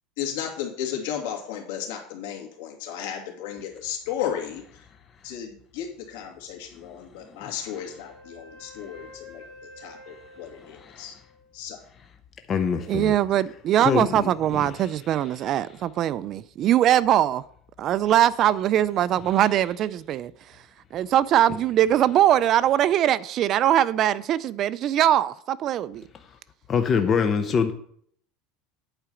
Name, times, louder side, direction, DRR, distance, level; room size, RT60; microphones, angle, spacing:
voice 1, 0.2-4.6 5.2-9.4 9.8-11.2 11.5-11.8 12.7-12.9, left 9 dB, 80° left, 2.5 m, -34 dB
Wind instrument woodwind instrument, 7.4-11.6, left 1 dB, 60° left, 3.4 m, -49 dB
voice 2, 10.7-11.0 12.5-13.1 13.8-14.7 26.7-27.7, left 6 dB, 25° left, 0.6 m, -25 dB
voice 3, 12.9-17.4 17.8-20.3 20.9-26.0, right 11 dB, 35° right, 0.3 m, -21 dB
8.9 x 4.8 x 6.9 m
supercardioid pair, 160°, 0 cm